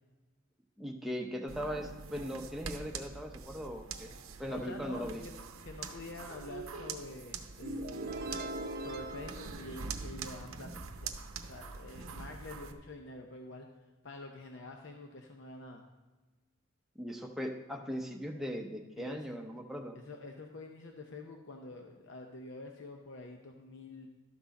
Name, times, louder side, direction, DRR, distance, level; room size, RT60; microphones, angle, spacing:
voice 1, 0.8-4.1 4.4-5.2 17.0-20.0, equal, ahead, 1 dB, 0.7 m, -39 dB
sound 1, 1.5-12.7, right 5 dB, 85° right, 0.7 m, -44 dB
voice 2, 4.5-8.2 8.7-11.1 11.5-13.7 14.0-15.8 19.0-19.2 19.9-24.1, left 2 dB, 60° left, 3 dB, 0.7 m, -47 dB
sound 2, 7.6-10.4, right 1 dB, 50° right, 0.6 m, -41 dB
12.5 x 6.0 x 4.1 m, 1.2 s
head